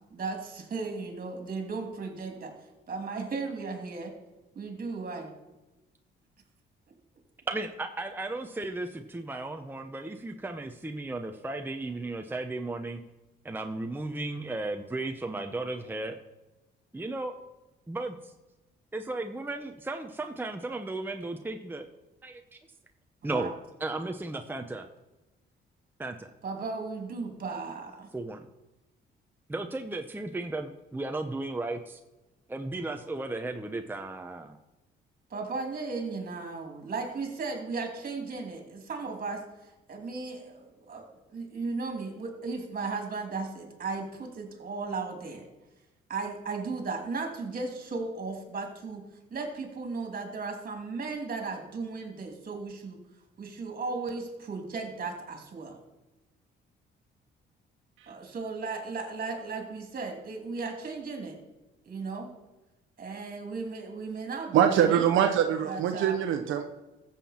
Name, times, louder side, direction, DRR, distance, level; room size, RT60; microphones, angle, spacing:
voice 1, 0.1-2.5 2.9-4.1 4.5-5.3 23.3-23.5 26.4-28.1 35.3-45.5 46.1-49.0 49.3-53.0 53.4-55.8 58.1-61.4 61.8-62.3 63.0-65.0 65.6-66.2, right 4 dB, 45° right, 3 dB, 2.8 m, -36 dB
voice 2, 7.5-13.0 13.4-16.2 16.9-17.4 17.9-18.3 18.9-21.9 22.2-22.4 23.2-23.5 23.8-24.9 26.0-26.3 28.1-28.5 29.5-32.0 32.5-34.6, right 2 dB, 10° right, 5 dB, 0.8 m, -35 dB
voice 3, 64.5-66.7, right 9 dB, 80° right, 5 dB, 0.9 m, -23 dB
14.5 x 7.5 x 4.4 m, 1.1 s
cardioid pair, 90°, 20 cm